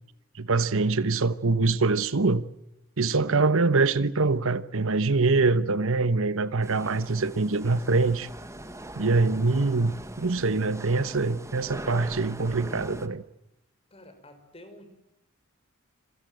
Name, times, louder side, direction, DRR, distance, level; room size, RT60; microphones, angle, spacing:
voice 1, 0.3-2.4 3.0-8.3 9.0-13.2, right 3 dB, 70° right, 1.1 m, -24 dB
sound 1, 6.6-13.1, right 1 dB, 15° right, 1.7 m, -41 dB
voice 2, 13.9-14.9, left 1 dB, 30° left, 5.6 m, -49 dB
27.5 x 23.0 x 7.8 m
head